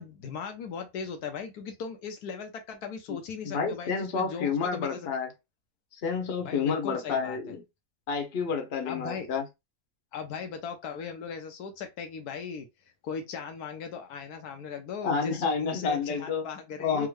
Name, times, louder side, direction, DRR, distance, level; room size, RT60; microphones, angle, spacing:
voice 1, 0.0-5.1 6.4-7.5 8.8-9.3 10.1-12.7 13.0-17.1, left 6 dB, 80° left, 1.2 m, -38 dB
voice 2, 3.4-5.3 6.0-7.6 8.1-9.4 15.0-16.4 16.8-17.1, left 5 dB, 45° left, 0.9 m, -29 dB
3.6 x 2.2 x 3.1 m
omnidirectional pair, 1.6 m